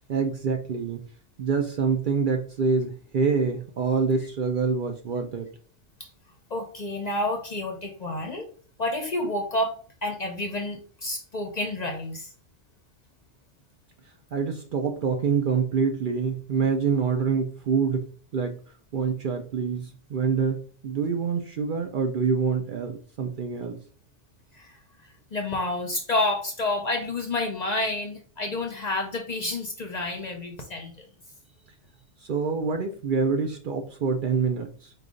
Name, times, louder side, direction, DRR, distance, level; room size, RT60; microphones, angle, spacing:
voice 1, 0.1-1.0 1.4-5.5 14.3-18.1 18.3-18.6 18.9-23.8 32.2-34.9, right 5 dB, 55° right, 4 dB, 0.6 m, -26 dB
voice 2, 6.5-8.5 8.8-9.7 10.0-12.3 24.5-31.1, left 2 dB, 45° left, 3 dB, 0.7 m, -29 dB
4.8 x 2.3 x 3.7 m, 0.42 s
omnidirectional pair, 1.2 m